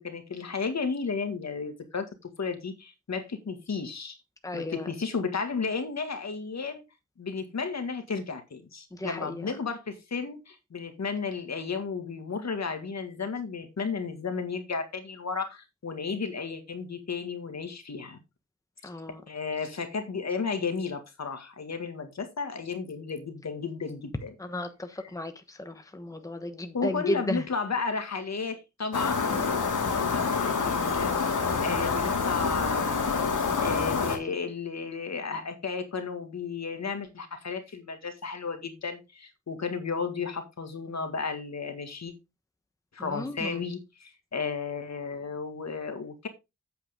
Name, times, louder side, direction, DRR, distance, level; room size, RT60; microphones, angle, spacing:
voice 1, 0.0-2.1 2.4-4.2 4.5-6.8 7.2-18.2 19.3-24.4 25.0-25.2 26.2-26.3 26.7-29.3 29.8-31.1 31.6-42.1 42.9-46.3, left 5 dB, 60° left, 1.9 m, -33 dB
voice 2, 4.4-4.8 9.0-9.3 18.8-19.2 24.4-25.3 25.6-27.4 31.4-31.6 43.0-43.6, left 1 dB, 10° left, 1.1 m, -34 dB
sound 1, 28.9-34.2, left 5 dB, 85° left, 2.4 m, -27 dB
8.5 x 7.9 x 3.6 m
wide cardioid pair, 145°, 30 cm